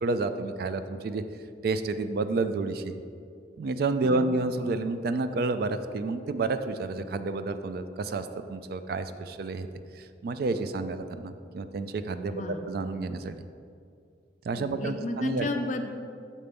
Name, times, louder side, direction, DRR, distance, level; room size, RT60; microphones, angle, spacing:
voice 1, 0.0-1.2 1.6-2.9 3.6-9.7 9.9-12.3 12.6-13.4 14.4-15.5, right 3 dB, 55° right, 10 dB, 0.3 m, -30 dB
voice 2, 12.3-12.7 14.5-15.9, left 2 dB, 40° left, 5 dB, 0.5 m, -33 dB
6.9 x 4.2 x 5.2 m, 2.4 s
head